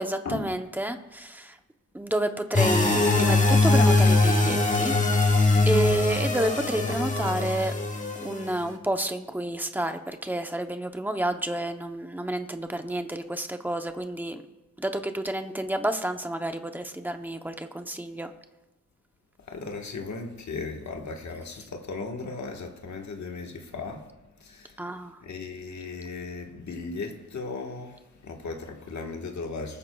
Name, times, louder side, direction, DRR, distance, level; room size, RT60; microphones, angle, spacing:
voice 1, 0.0-1.5 1.9-5.0 5.7-7.7 8.2-14.4 14.8-18.3 24.8-25.1, right 1 dB, 5° right, 0.7 m, -30 dB
sound 1, 2.5-8.5, left 2 dB, 25° left, 1.2 m, -22 dB
voice 2, 19.5-24.1 24.4-24.8 25.2-29.8, left 4 dB, 70° left, 1.5 m, -36 dB
19.5 x 14.5 x 2.3 m
wide cardioid pair, 170°, 29 cm